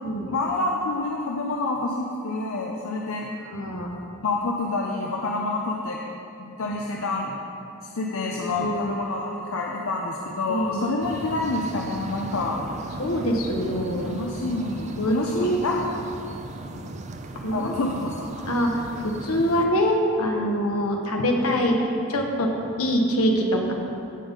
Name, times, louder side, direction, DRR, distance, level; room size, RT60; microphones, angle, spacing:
voice 1, 0.3-3.3 4.2-6.0 6.4-7.4 7.9-12.6 14.1-15.8 16.7-16.9 17.5-18.5 19.4-19.5, left 2 dB, 70° left, -1 dB, 0.6 m, -28 dB
voice 2, 3.5-4.0 6.7-6.8 8.2-9.0 10.5-10.8 13.0-14.2 15.0-15.6 17.4-17.7 18.5-21.8 22.1-22.5 22.8-23.7, equal, 90° left, 1 dB, 1.2 m, -24 dB
sound 1, 11.0-19.7, right 2 dB, 30° right, 0.4 m, -37 dB
16.0 x 5.3 x 3.6 m, 2.6 s
head